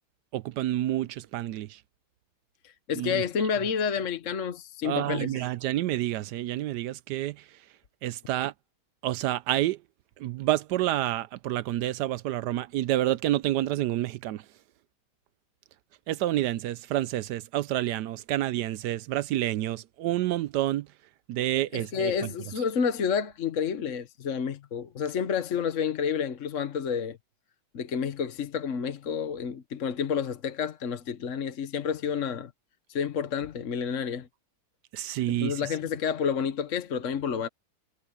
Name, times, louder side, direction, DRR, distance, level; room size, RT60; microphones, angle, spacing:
voice 1, 0.3-1.8 2.9-3.2 4.8-7.4 8.0-8.5 9.0-9.8 10.2-14.4 16.1-20.9 21.3-22.3 34.9-35.6, right 14 dB, 80° right, 0.9 m, -28 dB
voice 2, 2.6-5.5 21.7-27.2 27.7-32.5 32.9-34.3 35.3-37.5, left 7 dB, 45° left, 1.1 m, -30 dB
omnidirectional pair, 2.3 m